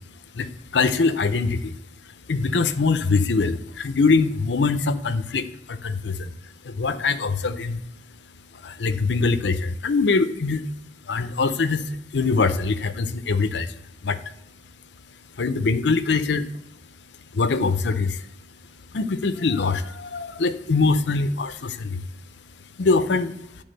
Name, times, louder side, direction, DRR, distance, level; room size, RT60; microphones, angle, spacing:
voice 1, 0.4-1.7 2.3-6.3 6.6-7.8 8.6-10.6 11.1-11.8 12.1-13.7 14.0-14.2 15.4-16.5 17.3-18.2 18.9-22.0 22.8-23.4, left 4 dB, 70° left, 10 dB, 0.6 m, -23 dB
10.0 x 3.6 x 5.3 m, 0.87 s
head